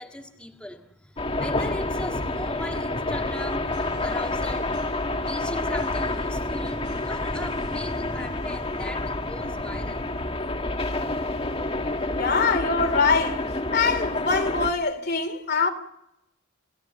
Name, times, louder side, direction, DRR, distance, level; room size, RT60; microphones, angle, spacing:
voice 1, 0.0-10.0, left 1 dB, 5° left, 1.7 m, -38 dB
sound 1, 1.2-14.7, left 2 dB, 30° left, 1.9 m, -28 dB
sound 2, 3.7-10.7, right 1 dB, 40° right, 7.2 m, -50 dB
voice 2, 12.1-13.5 13.7-15.7, left 4 dB, 50° left, 3.0 m, -23 dB
29.0 x 17.0 x 7.9 m
head